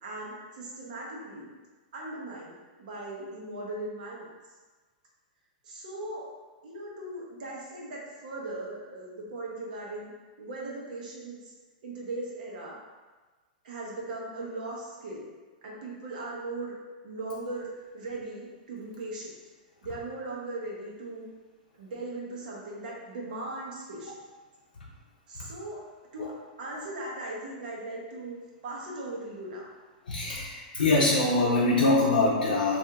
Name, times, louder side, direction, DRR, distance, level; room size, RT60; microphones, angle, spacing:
voice 1, 0.0-1.5 1.9-4.3 5.6-6.3 6.6-11.5 11.8-12.8 13.6-15.3 15.6-16.8 17.0-19.3 19.8-21.3 21.8-24.2 25.3-25.8 26.1-26.3 26.6-29.7, right 2 dB, 70° right, -3 dB, 1.0 m, -38 dB
voice 2, 30.1-32.8, left 2 dB, 85° left, -5 dB, 0.6 m, -24 dB
2.7 x 2.6 x 3.5 m, 1.3 s
hypercardioid pair, 115°, 5 cm